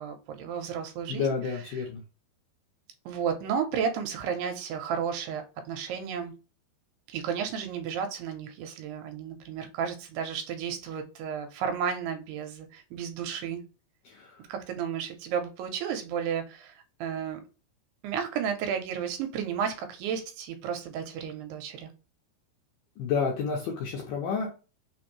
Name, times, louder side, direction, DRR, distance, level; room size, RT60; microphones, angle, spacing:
voice 1, 0.0-1.9 3.1-6.3 7.1-13.6 14.5-17.4 18.0-21.9, right 7 dB, 85° right, 6 dB, 2.7 m, -33 dB
voice 2, 1.1-2.0 14.1-14.4 23.0-24.5, left 5 dB, 80° left, 0 dB, 2.0 m, -30 dB
6.1 x 2.6 x 3.0 m, 0.33 s
omnidirectional pair, 4.8 m